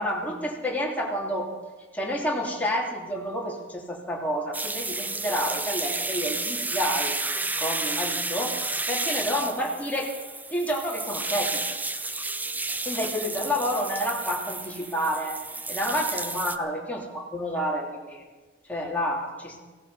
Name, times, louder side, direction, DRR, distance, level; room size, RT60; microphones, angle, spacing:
voice 1, 0.0-1.5 1.9-7.1 7.6-10.1 10.5-11.6 12.8-15.4 15.7-18.2 18.6-19.6, equal, 10° left, -3 dB, 3.1 m, -29 dB
sound 1, 4.5-16.6, right 3 dB, 10° right, 0.6 m, -31 dB
16.5 x 15.0 x 5.7 m, 1.3 s
head